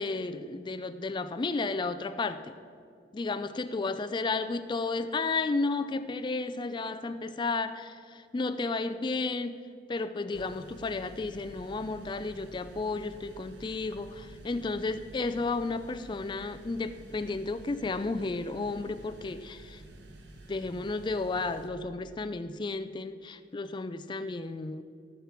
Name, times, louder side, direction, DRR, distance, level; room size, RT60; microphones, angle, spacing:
voice 1, 0.0-2.5 3.1-9.6 9.9-19.8 20.5-24.8, left 3 dB, 25° left, 10 dB, 0.3 m, -33 dB
sound 1, 10.3-21.7, right 1 dB, 65° right, 1.2 m, -50 dB
14.0 x 5.8 x 7.3 m, 2.3 s
head